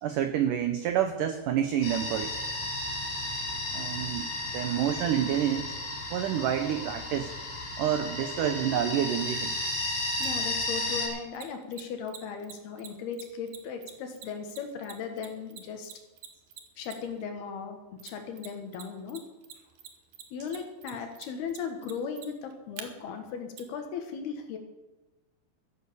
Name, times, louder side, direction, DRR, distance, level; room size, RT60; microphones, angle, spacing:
voice 1, 0.0-2.4 3.7-5.7 6.1-7.3 7.8-9.5, right 10 dB, 80° right, 8 dB, 1.9 m, -28 dB
sound 1, 1.8-11.1, left 1 dB, 55° left, 5.8 m, -33 dB
voice 2, 10.2-15.9 16.8-19.2 20.3-24.6, left 6 dB, 70° left, 5 dB, 3.5 m, -37 dB
Mechanisms, 10.2-10.3 11.3-17.2 18.0-18.8 19.1-22.8 23.6-23.7, right 10 dB, 65° right, 2.5 m, -45 dB
14.0 x 11.0 x 6.9 m, 1.1 s
omnidirectional pair, 4.8 m